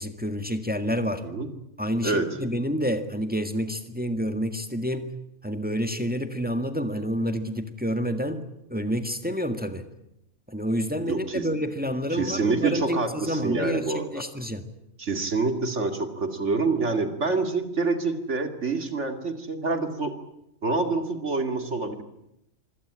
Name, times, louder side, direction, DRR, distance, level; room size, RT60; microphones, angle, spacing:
voice 1, 0.0-1.2 1.8-5.1 5.4-8.4 8.7-9.8 10.5-14.6, equal, 5° right, 8 dB, 1.6 m, -28 dB
voice 2, 11.1-11.5 12.1-14.2 15.0-20.1 20.6-22.0, right 3 dB, 60° right, 6 dB, 2.7 m, -27 dB
25.5 x 17.0 x 9.9 m, 0.84 s
omnidirectional pair, 1.4 m